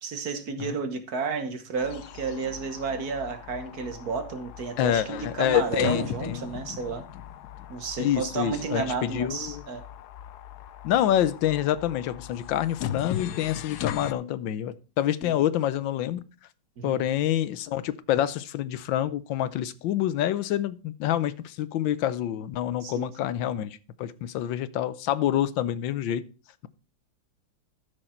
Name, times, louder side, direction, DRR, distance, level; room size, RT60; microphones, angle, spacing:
voice 1, 0.0-7.0 7.7-9.8 15.2-15.4 16.8-17.0 22.8-23.1, right 5 dB, 55° right, 1.6 m, -32 dB
sound 1, 1.8-14.1, left 11 dB, 70° left, 1.1 m, -38 dB
voice 2, 4.8-6.4 8.0-9.6 10.8-16.2 16.8-26.2, left 11 dB, 90° left, 1.5 m, -27 dB
12.5 x 6.4 x 4.4 m
omnidirectional pair, 2.0 m